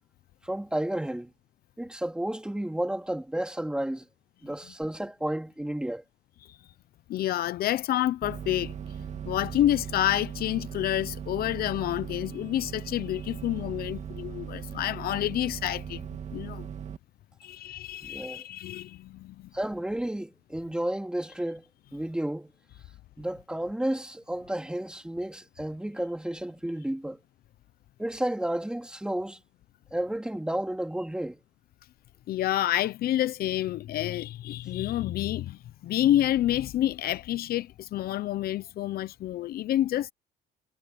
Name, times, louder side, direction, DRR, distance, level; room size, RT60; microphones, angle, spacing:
voice 1, 0.4-1.3 1.8-4.0 4.4-6.0 18.0-18.4 19.5-21.6 21.9-22.5 23.2-27.2 28.0-29.4 29.9-31.4, right 1 dB, 5° right, 3.3 m, -32 dB
voice 2, 7.1-8.7 9.3-16.0 16.3-16.7 17.4-19.5 32.3-40.1, left 13 dB, 65° left, 0.8 m, -28 dB
sound 1, 8.2-17.0, right 8 dB, 45° right, 2.5 m, -39 dB
cardioid pair, 110°, 17 cm